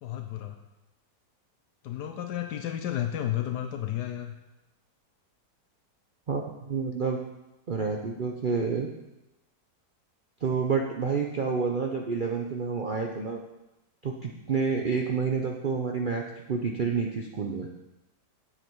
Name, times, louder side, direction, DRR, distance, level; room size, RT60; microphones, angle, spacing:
voice 1, 0.0-0.6 1.8-4.3, left 11 dB, 80° left, 5 dB, 1.2 m, -32 dB
voice 2, 6.3-7.2 7.7-8.9 10.4-13.4 14.0-17.7, right 5 dB, 65° right, 1 dB, 0.4 m, -29 dB
8.0 x 7.6 x 4.5 m, 0.96 s
omnidirectional pair, 1.8 m